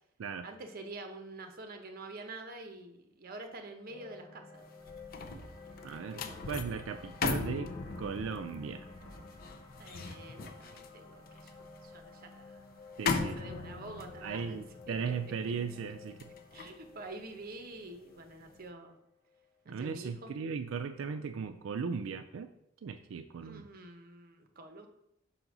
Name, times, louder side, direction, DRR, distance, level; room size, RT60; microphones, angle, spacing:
voice 1, 0.4-4.6 6.2-6.4 9.8-12.7 13.1-14.6 14.9-15.1 16.5-19.0 19.6-20.3 23.4-24.9, right 2 dB, 50° right, 5 dB, 0.9 m, -47 dB
sound 1, 3.9-20.1, left 4 dB, 30° left, 1.5 m, -53 dB
sound 2, 4.6-18.0 18.4-18.6, left 4 dB, 50° left, 0.5 m, -39 dB
Knock, 5.4-6.1 6.5-7.3 7.9-8.5 9.0-9.7, equal, 75° left, 1.3 m, -56 dB
voice 2, 5.8-8.9 13.0-13.4 14.2-16.3 19.7-22.5 22.8-23.6, right 5 dB, 90° right, 9 dB, 0.4 m, -37 dB
5.6 x 3.9 x 6.0 m, 0.81 s
head